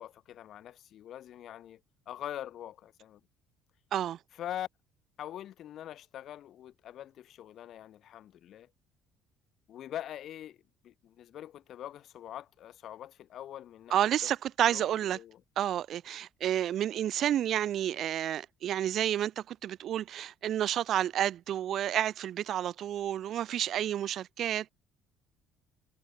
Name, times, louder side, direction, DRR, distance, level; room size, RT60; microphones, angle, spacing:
voice 1, 0.0-1.8 2.1-3.2 4.3-4.7 5.2-8.7 9.7-10.6 10.8-14.3 14.7-15.4, left 11 dB, 50° left, 1.7 m, -43 dB
voice 2, 13.9-15.2 15.6-24.7, right 11 dB, 45° right, 0.7 m, -30 dB
cardioid pair, 160°, 0 cm